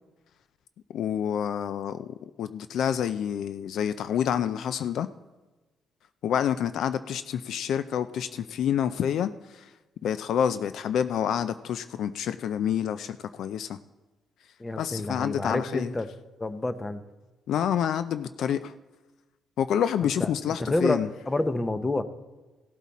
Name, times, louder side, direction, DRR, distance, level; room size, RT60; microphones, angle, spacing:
voice 1, 0.9-5.1 6.2-9.7 10.0-13.8 14.8-15.9 17.5-18.7 19.6-21.1, left 9 dB, 75° left, 12 dB, 0.4 m, -28 dB
voice 2, 14.6-16.1 16.4-17.0 20.0-20.3 20.6-21.0 21.3-22.0, left 2 dB, 20° left, 10 dB, 0.9 m, -28 dB
16.5 x 8.1 x 4.2 m, 1.2 s
cardioid pair, 90°, 0 cm